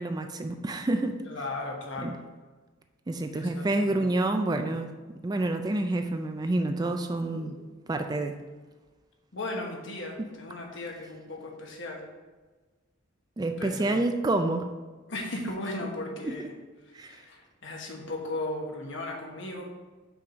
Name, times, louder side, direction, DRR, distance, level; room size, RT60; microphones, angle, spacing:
voice 1, 0.0-1.2 2.0-2.2 3.1-4.9 5.2-7.6 7.9-8.4 13.4-14.7 16.2-16.5 16.9-17.2, right 2 dB, 20° right, 6 dB, 0.3 m, -28 dB
voice 2, 1.2-2.1 3.3-4.1 7.3-7.6 9.3-12.0 13.6-14.0 15.1-16.5 17.1-19.7, left 2 dB, 60° left, 0 dB, 1.3 m, -36 dB
5.8 x 4.7 x 5.1 m, 1.3 s
head